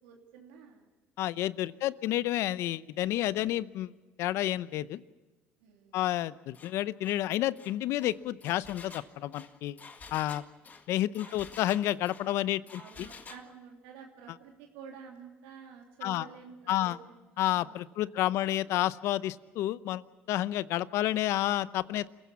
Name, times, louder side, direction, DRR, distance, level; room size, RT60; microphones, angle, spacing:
voice 1, 0.0-0.9 1.7-1.9 5.6-6.0 11.2-11.5 12.7-18.6, right 6 dB, 90° right, 0 dB, 3.0 m, -51 dB
voice 2, 1.2-3.9 4.2-5.0 5.9-9.8 10.1-10.4 10.9-13.1 16.0-16.3 16.7-17.0 17.4-22.1, left 14 dB, 70° left, 17 dB, 0.7 m, -30 dB
Engine, 6.5-6.7 7.0-7.2 7.6-12.3 12.7-13.5, left 4 dB, 35° left, 1.9 m, -50 dB
27.0 x 15.5 x 8.5 m, 1.2 s
supercardioid pair, 80°, 5 cm